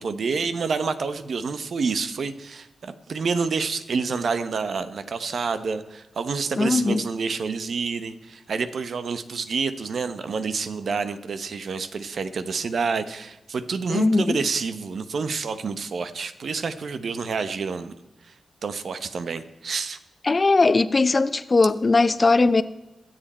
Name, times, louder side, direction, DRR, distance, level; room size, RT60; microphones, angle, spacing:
voice 1, 0.0-17.9 18.2-18.3 18.6-20.0, right 5 dB, 70° right, 0.9 m, -28 dB
voice 2, 6.6-7.0 13.9-14.4 20.2-22.6, left 3 dB, 35° left, 0.6 m, -19 dB
22.0 x 7.7 x 4.3 m
cardioid pair, 85°, 0 cm